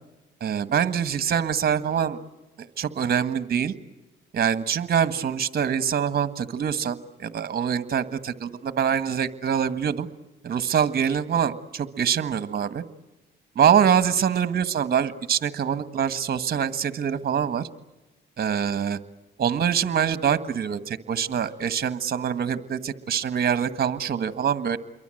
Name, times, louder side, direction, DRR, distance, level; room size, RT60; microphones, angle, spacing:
voice 1, 0.4-2.2 2.6-3.7 4.3-10.1 10.4-12.8 13.5-17.7 18.4-19.0 19.4-24.8, right 8 dB, 50° right, 12 dB, 1.6 m, -24 dB
28.0 x 23.0 x 7.8 m, 1.1 s
cardioid pair, 90°, 20 cm